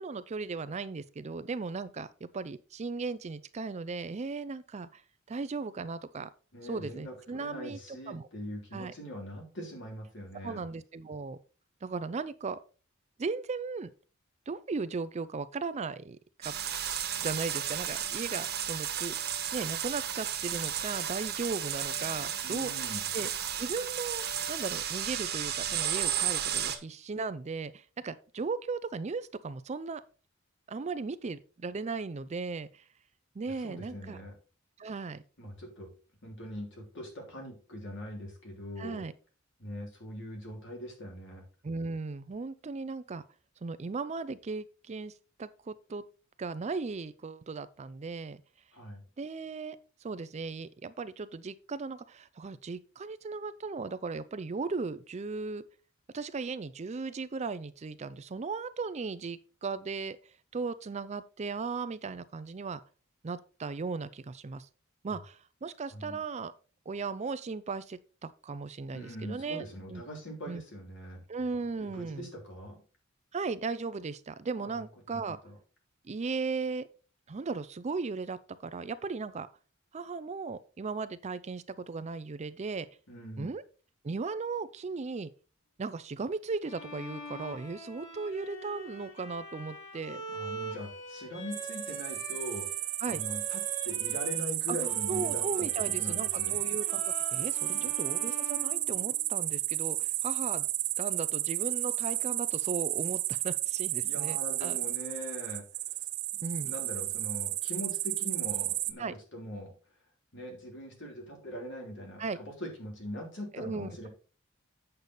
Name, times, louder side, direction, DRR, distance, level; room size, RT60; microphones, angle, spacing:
voice 1, 0.0-5.0 5.3-6.3 6.6-8.3 8.7-8.9 10.4-11.4 11.8-12.6 13.2-13.9 14.5-16.5 17.2-22.7 23.1-23.3 23.6-30.0 30.7-32.9 33.4-34.2 34.8-35.2 38.8-39.1 41.6-43.2 43.6-46.0 46.4-48.4 49.2-55.6 56.1-62.8 63.2-64.7 65.0-66.5 66.9-70.0 70.5-70.6 71.3-72.3 73.3-75.4 76.0-76.9 77.3-79.5 79.9-82.9 83.4-83.6 84.0-85.3 85.8-90.2 93.0-93.2 94.7-94.8 95.1-100.7 101.0-104.8 106.4-106.7 109.0-109.2 112.2-112.4 113.5-114.1, right 4 dB, 30° right, 0.4 m, -37 dB
voice 2, 6.5-10.6 22.4-23.0 33.4-34.3 35.4-35.9 36.2-39.0 39.6-41.4 48.7-49.0 65.1-65.2 65.9-66.2 68.9-71.2 71.8-72.8 74.6-74.7 75.1-75.6 83.1-83.5 90.3-92.7 93.1-95.7 96.0-96.6 97.7-98.0 104.0-105.6 106.6-109.7 110.3-114.1, equal, 60° left, 3.4 m, -42 dB
sound 1, 16.4-26.8, right 9 dB, 50° right, 1.3 m, -33 dB
Bowed string instrument, 86.6-94.5 94.8-99.6, equal, 35° left, 4.7 m, -44 dB
sound 2, 91.5-108.9, right 17 dB, 75° right, 0.6 m, -32 dB
8.1 x 6.6 x 4.1 m
head